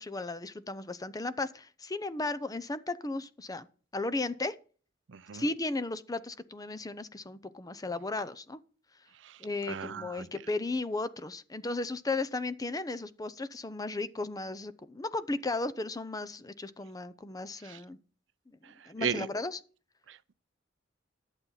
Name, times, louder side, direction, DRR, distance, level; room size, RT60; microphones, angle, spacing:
voice 1, 0.0-3.7 3.9-4.5 5.3-8.6 9.4-18.0 18.9-19.6, left 2 dB, 20° left, 0.6 m, -35 dB
voice 2, 5.1-5.4 9.1-10.3 17.6-17.8 18.6-19.3 20.1-20.3, right 7 dB, 70° right, 0.5 m, -37 dB
11.5 x 8.1 x 5.7 m
head